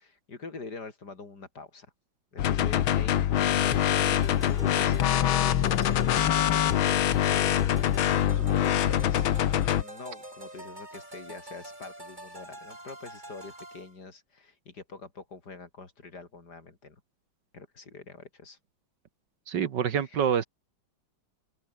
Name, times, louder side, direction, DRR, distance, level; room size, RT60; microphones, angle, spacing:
voice 1, 0.0-1.9 2.3-7.6 8.3-9.4 9.8-17.0 17.5-18.6 20.0-20.2, left 4 dB, 50° left, 3.8 m, -45 dB
sound 1, 2.4-9.8, left 11 dB, 80° left, 1.9 m, -24 dB
sound 2, 3.6-13.9, right 1 dB, 20° right, 6.4 m, -44 dB
voice 2, 19.5-20.4, right 8 dB, 60° right, 1.8 m, -26 dB
open air
omnidirectional pair, 2.2 m